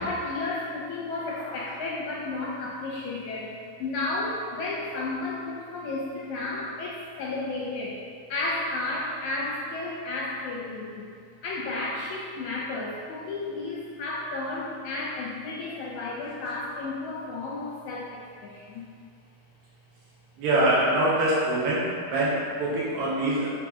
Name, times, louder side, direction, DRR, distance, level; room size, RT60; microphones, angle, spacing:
voice 1, 0.0-3.5 3.8-8.0 8.3-11.1 11.4-18.9, left 2 dB, 75° left, -4 dB, 1.7 m, -32 dB
voice 2, 20.4-23.5, right 1 dB, 80° right, -6 dB, 3.2 m, -24 dB
9.0 x 3.7 x 5.2 m, 2.1 s
omnidirectional pair, 4.6 m